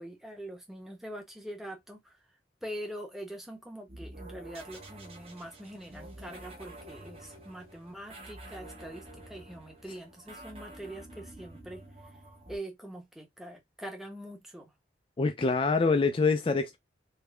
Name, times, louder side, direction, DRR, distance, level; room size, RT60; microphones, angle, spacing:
voice 1, 0.0-2.2 2.6-11.8 12.5-14.7, right 1 dB, ahead, 0.8 m, -43 dB
sound 1, 3.9-12.6, right 1 dB, 30° right, 0.9 m, -48 dB
voice 2, 15.2-16.8, left 4 dB, 30° left, 0.3 m, -25 dB
3.6 x 2.1 x 3.3 m
head